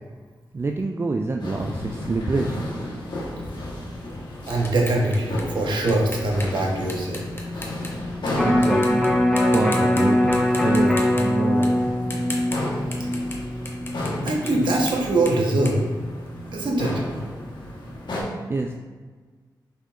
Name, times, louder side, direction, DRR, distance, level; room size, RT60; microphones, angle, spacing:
voice 1, 0.5-2.7 8.4-9.0 9.5-11.9 18.5-18.7, right 3 dB, 30° right, 3 dB, 0.3 m, -26 dB
sound 1, 1.4-18.2, left 1 dB, 70° left, 1.1 m, -33 dB
sound 2, 3.4-8.3 8.6-9.1 9.4-10.0 10.3-16.7, left 2 dB, 30° left, 0.9 m, -38 dB
voice 2, 4.5-7.2 14.2-15.8 16.5-17.0, right 2 dB, 75° right, -1 dB, 1.0 m, -22 dB
Electric guitar, 8.3-14.6 15.0-15.1, left 1 dB, 5° left, 0.7 m, -22 dB
5.5 x 3.6 x 2.4 m, 1.4 s
cardioid pair, 55°, 8 cm